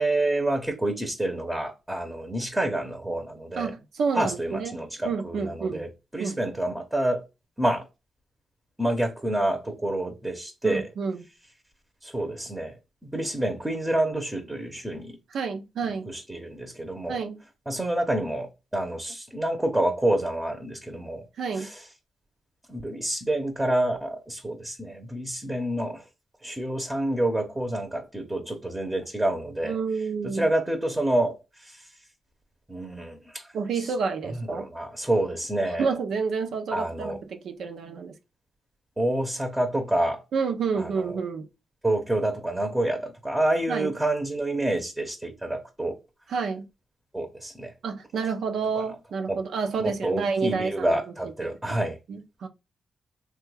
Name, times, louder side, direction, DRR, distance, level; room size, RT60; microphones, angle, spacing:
voice 1, 0.0-3.7 4.1-7.2 7.6-7.8 8.8-10.9 12.0-12.7 13.0-15.2 16.1-17.2 17.7-21.2 21.6-21.8 22.7-26.0 26.4-29.8 30.3-31.8 32.7-33.5 34.5-35.9 36.7-37.2 39.0-40.2 40.8-41.2 41.8-46.0 47.1-47.7 48.8-48.9 49.3-49.4 49.8-52.0, right 1 dB, 10° right, 0.7 m, -28 dB
voice 2, 3.6-5.9 6.2-6.4 10.6-11.2 15.3-16.1 17.1-17.4 21.4-21.7 29.6-30.5 33.5-34.7 35.8-38.1 40.3-41.5 43.7-43.9 46.3-46.7 47.8-51.0 51.7-51.8 52.1-52.5, right 5 dB, 80° right, 0.5 m, -29 dB
3.2 x 2.2 x 3.2 m
cardioid pair, 85°, 0 cm